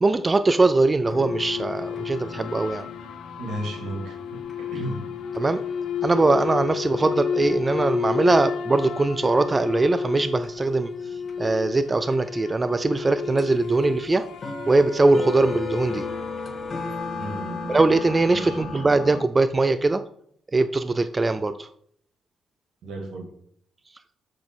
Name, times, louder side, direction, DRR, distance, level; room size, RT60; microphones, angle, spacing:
voice 1, 0.0-2.9 5.4-5.6 6.0-10.9 11.4-14.3 14.7-16.1 17.7-20.0 20.5-21.7, right 3 dB, 20° right, 11 dB, 0.3 m, -21 dB
sound 1, 1.0-17.6, left 7 dB, 80° left, 0.8 m, -32 dB
sound 2, 1.0-19.2, left 4 dB, 30° left, 1.2 m, -38 dB
voice 2, 3.4-5.0 6.9-7.0 17.1-17.7 18.3-18.6 22.8-23.3, right 1 dB, 80° right, 3 dB, 2.4 m, -34 dB
8.5 x 4.1 x 6.2 m, 0.67 s
cardioid pair, 140°, 0 cm